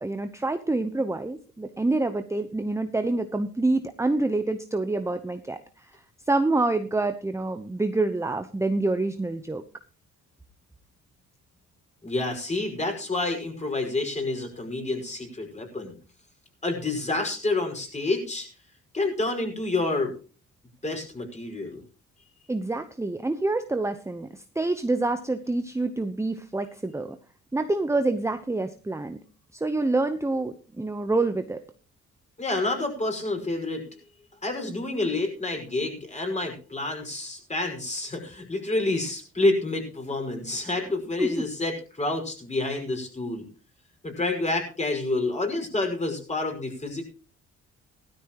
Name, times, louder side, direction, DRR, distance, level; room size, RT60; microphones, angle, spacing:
voice 1, 0.0-5.6 6.3-9.6 22.5-24.3 24.6-27.2 27.5-29.2 29.5-31.6 41.2-41.4, right 2 dB, 10° right, 8 dB, 0.9 m, -27 dB
voice 2, 12.0-15.9 16.6-18.5 18.9-20.1 20.8-21.8 32.4-33.9 34.4-43.4 44.0-47.0, left 2 dB, 25° left, 3 dB, 5.5 m, -28 dB
16.5 x 13.0 x 3.0 m, 0.37 s
cardioid pair, 90°, 30 cm